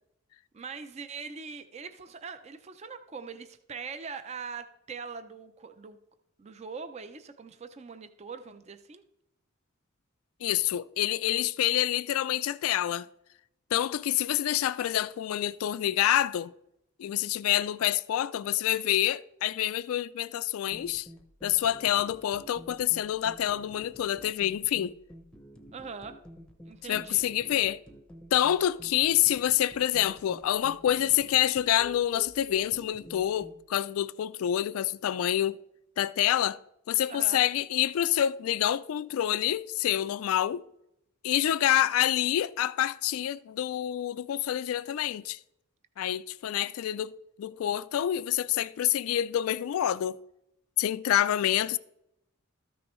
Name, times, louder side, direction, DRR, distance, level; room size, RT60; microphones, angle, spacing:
voice 1, 0.5-6.0 6.4-9.0 25.7-26.2 26.6-27.2 37.1-37.4, right 5 dB, 30° right, 0.4 m, -42 dB
voice 2, 10.4-13.1 13.7-16.5 17.0-21.1 21.4-25.0 26.9-27.8 28.3-35.6 36.0-36.6 36.9-40.6 41.2-45.4 46.0-50.2 50.8-51.8, left 12 dB, 85° left, 0.3 m, -27 dB
sound 1, 20.7-33.6, right 1 dB, 5° left, 0.7 m, -50 dB
13.5 x 6.2 x 3.1 m
head